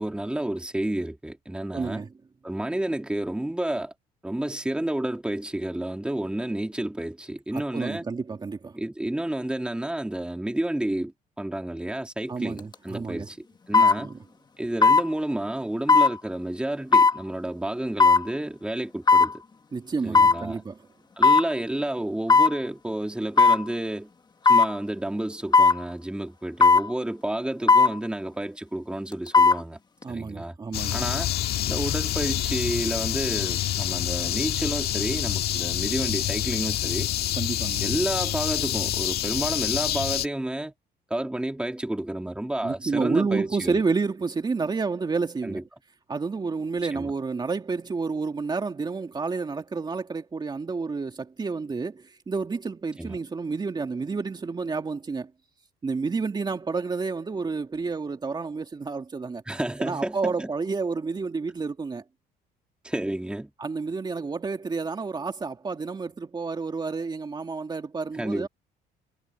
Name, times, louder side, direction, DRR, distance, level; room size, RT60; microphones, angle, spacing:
voice 1, 0.0-2.0 2.4-3.9 4.2-8.1 8.7-14.2 14.6-19.4 20.0-20.6 21.2-24.1 24.5-29.8 30.1-30.5 30.9-31.3 31.7-37.1 37.8-40.7 41.1-43.8 45.4-45.6 46.9-47.1 53.0-53.1 59.5-60.5 62.8-63.5 68.2-68.5, right 1 dB, 5° right, 2.5 m, -30 dB
voice 2, 1.7-2.1 7.5-8.8 12.3-13.3 13.7-14.1 19.7-20.8 30.0-31.0 37.4-37.8 42.6-45.6 46.1-55.3 55.8-59.4 59.8-62.0 63.6-68.5, right 4 dB, 25° right, 2.4 m, -30 dB
sound 1, 12.6-12.7 13.7-14.0 14.8-15.1 15.9-16.1 16.9-17.2 18.0-18.2 19.1-19.3 20.1-20.4 21.2-21.5 22.3-22.6 23.4-23.6 24.4-24.7 25.5-25.8 26.6-26.9 27.7-27.9 29.1-29.6 30.0-30.1, left 4 dB, 25° left, 1.6 m, -16 dB
sound 2, 30.7-40.3, left 12 dB, 70° left, 1.7 m, -27 dB
cardioid pair, 110°, 17 cm